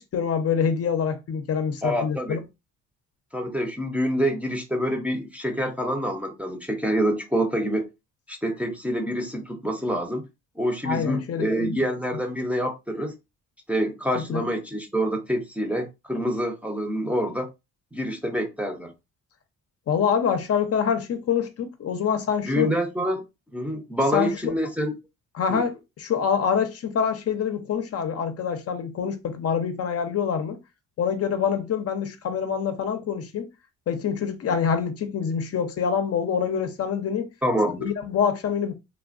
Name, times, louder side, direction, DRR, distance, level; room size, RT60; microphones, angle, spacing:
voice 1, 0.0-2.4 10.8-11.7 14.1-14.4 19.9-22.7 24.1-24.5 25.3-30.6 31.0-33.5 33.9-37.3 37.8-38.7, left 7 dB, 55° left, 0.6 m, -26 dB
voice 2, 1.8-2.4 3.3-7.9 8.3-10.2 10.6-13.2 13.7-17.5 17.9-18.9 22.4-23.2 23.5-24.9 25.5-25.7 37.4-37.9, equal, 5° right, 0.6 m, -26 dB
3.3 x 2.2 x 2.5 m
cardioid pair, 90°, 30 cm